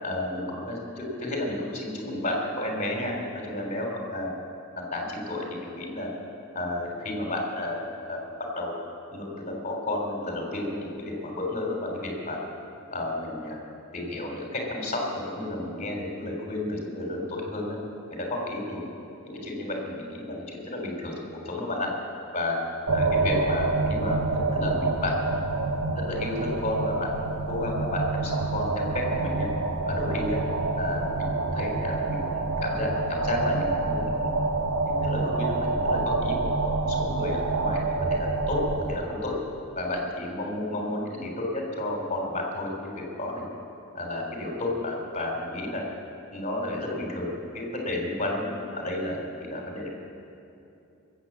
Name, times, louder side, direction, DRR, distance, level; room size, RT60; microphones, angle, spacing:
voice 1, 0.0-4.3 4.9-6.1 6.5-8.2 8.5-12.4 12.9-13.6 13.9-17.8 18.1-18.8 19.2-21.1 21.4-21.9 22.3-22.6 22.9-25.1 26.0-27.1 27.4-29.5 29.8-30.4 30.7-34.2 34.8-39.3 39.7-43.5 43.9-45.8 46.3-49.9, left 1 dB, 35° left, 0 dB, 3.3 m, -32 dB
sound 1, 22.9-38.9, right 3 dB, 85° right, 1.0 m, -27 dB
21.0 x 8.2 x 7.3 m, 2.7 s
head